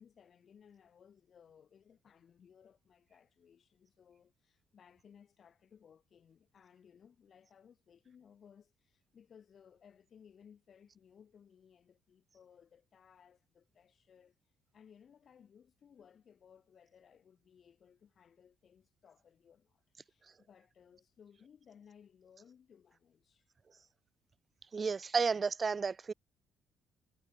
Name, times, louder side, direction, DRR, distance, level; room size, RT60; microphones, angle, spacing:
voice 1, 0.0-23.5, left 7 dB, 35° left, 6.4 m, -62 dB
voice 2, 24.7-26.1, right 5 dB, 20° right, 0.3 m, -32 dB
cardioid pair, 180°, 0 cm